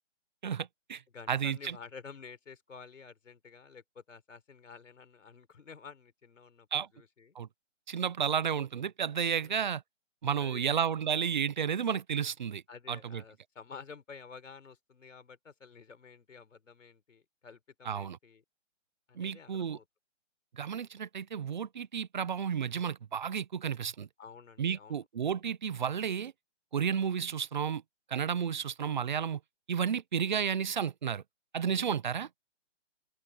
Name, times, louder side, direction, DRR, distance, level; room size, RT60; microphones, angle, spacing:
voice 1, 0.4-1.0 1.3-1.8 6.7-6.9 7.3-7.5 7.9-9.8 10.2-12.6 12.9-13.2 17.8-18.2 19.2-19.8 20.5-24.1 24.6-26.3 26.7-27.8 28.1-29.4 29.7-31.2 31.5-32.3, right 7 dB, 40° right, 0.9 m, -32 dB
voice 2, 1.1-6.7 6.9-7.4 9.4-9.7 10.4-10.8 12.7-18.4 19.1-19.8 24.2-25.0 31.7-31.9, left 5 dB, 85° left, 4.6 m, -51 dB
open air
hypercardioid pair, 170°, 37 cm